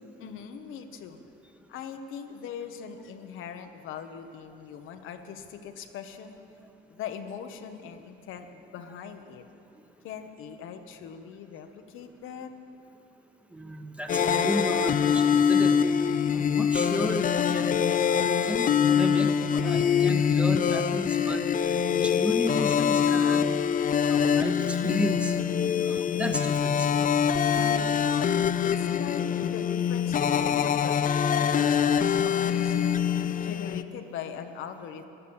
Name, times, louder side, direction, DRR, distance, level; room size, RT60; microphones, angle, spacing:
voice 1, 0.2-1.2 1.7-6.4 6.9-9.4 10.0-12.5 27.6-32.9 33.4-35.0, left 8 dB, 90° left, 6 dB, 1.0 m, -41 dB
voice 2, 13.5-15.8 16.3-25.3 25.8-26.9 27.4-27.7, equal, 5° right, 5 dB, 1.1 m, -34 dB
sound 1, 14.1-33.8, left 7 dB, 45° left, 0.5 m, -24 dB
14.0 x 11.5 x 7.0 m, 2.6 s
cardioid pair, 90°, 20 cm